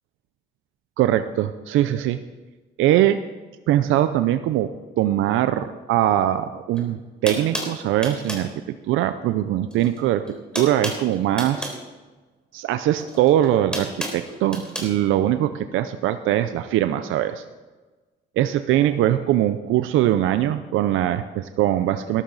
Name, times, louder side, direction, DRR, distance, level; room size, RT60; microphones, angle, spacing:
voice 1, 1.0-2.2 2.8-3.3 3.7-4.7 5.0-8.5 8.9-11.7 12.5-17.4 18.4-22.2, right 12 dB, 90° right, 10 dB, 0.6 m, -21 dB
sound 1, 6.7-6.8 7.3-8.5 9.7-10.0 10.2-11.8 13.0-14.9, equal, 5° left, 3.6 m, -31 dB
14.0 x 11.5 x 4.0 m, 1.2 s
cardioid pair, 90°, 20 cm